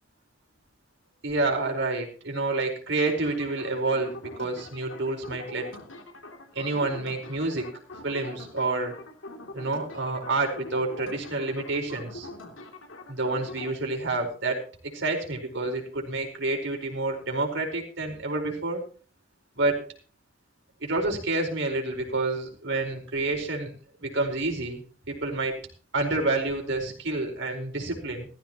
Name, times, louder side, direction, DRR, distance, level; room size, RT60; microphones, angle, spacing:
voice 1, 1.2-5.7 6.5-7.7 8.0-8.9 9.5-12.3 13.1-14.6 14.9-18.8 19.5-19.8 20.8-23.7 24.0-24.8 25.1-25.5 25.9-28.3, right 2 dB, 65° right, 2 dB, 4.7 m, -28 dB
sound 1, 3.1-13.7, left 2 dB, 75° left, 2.9 m, -43 dB
17.5 x 14.5 x 3.0 m, 0.38 s
head